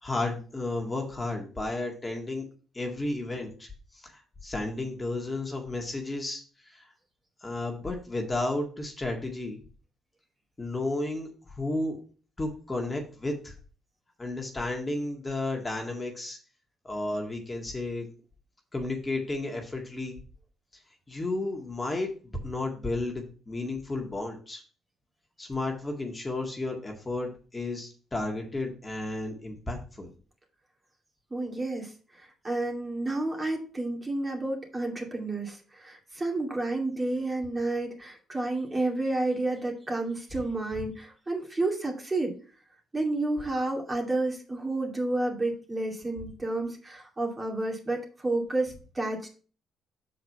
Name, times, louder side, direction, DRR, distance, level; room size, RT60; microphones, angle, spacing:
voice 1, 0.0-2.5 2.7-3.7 4.0-6.4 6.7-6.8 7.4-9.6 10.6-12.0 12.4-13.5 14.2-16.4 16.8-18.1 18.7-20.2 21.1-22.1 22.4-24.6 25.4-30.1, left 2 dB, 25° left, 1 dB, 1.9 m, -32 dB
voice 2, 31.3-42.3 42.9-49.2, right 2 dB, 25° right, 1 dB, 2.4 m, -30 dB
6.4 x 4.7 x 5.5 m, 0.39 s
supercardioid pair, 65°, 0 cm